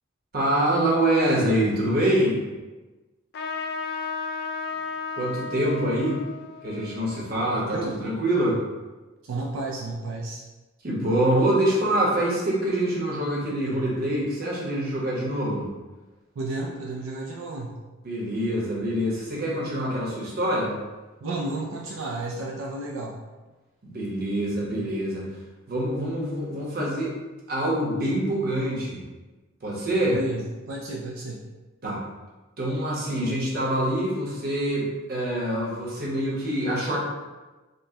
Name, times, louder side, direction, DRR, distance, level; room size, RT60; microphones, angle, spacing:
voice 1, 0.3-2.4 5.2-6.2 6.6-8.6 10.8-15.7 18.0-20.8 23.8-25.3 25.7-27.1 27.5-29.0 29.6-30.2 31.8-32.0 32.6-37.0, right 1 dB, 50° right, -4 dB, 0.9 m, -25 dB
Trumpet, 3.3-8.3, left 4 dB, 50° left, 0.4 m, -35 dB
voice 2, 7.5-7.9 9.2-10.4 16.4-17.8 21.2-23.2 30.1-31.4, right 2 dB, 85° right, -1 dB, 0.4 m, -32 dB
5.2 x 2.1 x 2.8 m, 1.2 s
head